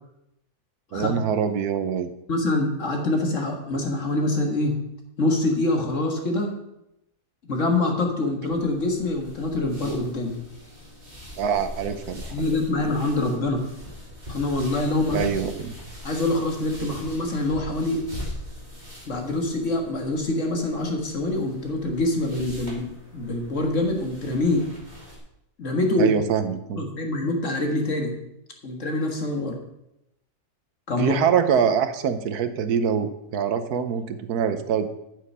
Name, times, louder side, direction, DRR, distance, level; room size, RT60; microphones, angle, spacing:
voice 1, 0.9-2.1 11.4-12.3 15.1-15.8 26.0-26.8 31.0-34.9, right 7 dB, 80° right, 10 dB, 1.3 m, -24 dB
voice 2, 2.3-4.8 5.2-6.5 7.4-10.4 12.3-13.6 14.3-15.2 16.0-18.0 19.1-24.7 25.6-26.1 26.8-28.1 28.6-29.6 30.9-31.2, left 2 dB, 50° left, 2 dB, 2.0 m, -25 dB
sound 1, 8.5-25.2, left 1 dB, 30° right, 3.1 m, -41 dB
9.0 x 8.8 x 5.5 m, 0.85 s
omnidirectional pair, 1.6 m